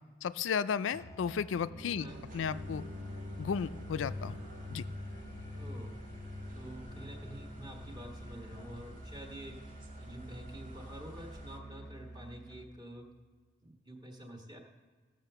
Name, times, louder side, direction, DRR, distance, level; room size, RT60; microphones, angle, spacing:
voice 1, 0.2-2.1 2.3-2.8 3.4-4.4 4.7-4.9, left 6 dB, 85° left, 16 dB, 0.4 m, -34 dB
Musical instrument, 0.9-12.8, right 1 dB, 15° left, 0.9 m, -49 dB
sound 1, 1.4-8.7, left 2 dB, 75° right, 1.6 m, -45 dB
sound 2, 2.1-11.6, equal, 45° right, 1.7 m, -54 dB
voice 2, 5.5-5.9 6.5-9.5 10.0-13.1 13.6-14.6, right 1 dB, 25° right, 2 dB, 1.5 m, -48 dB
15.0 x 6.5 x 6.7 m, 1.5 s
head